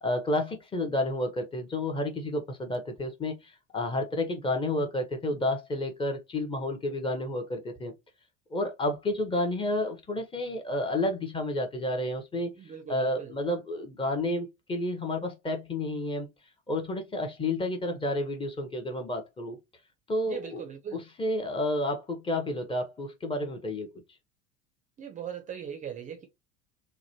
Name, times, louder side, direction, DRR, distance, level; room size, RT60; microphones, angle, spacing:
voice 1, 0.0-7.9 8.5-12.5 12.9-16.3 16.7-19.6 20.1-20.6 20.9-23.9, left 1 dB, 15° left, 0.7 m, -30 dB
voice 2, 12.6-13.3 20.3-21.0 25.0-26.3, right 8 dB, 20° right, 0.5 m, -39 dB
2.9 x 2.1 x 2.8 m
figure-of-eight pair, 75°, 34 cm